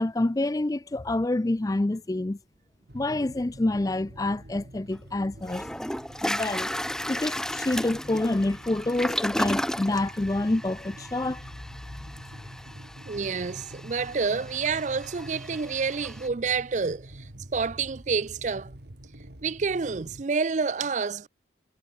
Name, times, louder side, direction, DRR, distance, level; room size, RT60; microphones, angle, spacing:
voice 1, 0.0-2.4 2.9-5.7 6.2-6.7 7.1-11.5 12.0-12.1, left 2 dB, 20° left, 0.4 m, -27 dB
sound 1, 2.9-20.2, right 1 dB, 60° right, 3.3 m, -47 dB
Toilet flush, 4.9-5.0 5.5-16.3, equal, 5° left, 1.6 m, -34 dB
voice 2, 13.1-18.7 19.4-21.3, right 5 dB, 40° right, 0.5 m, -28 dB
head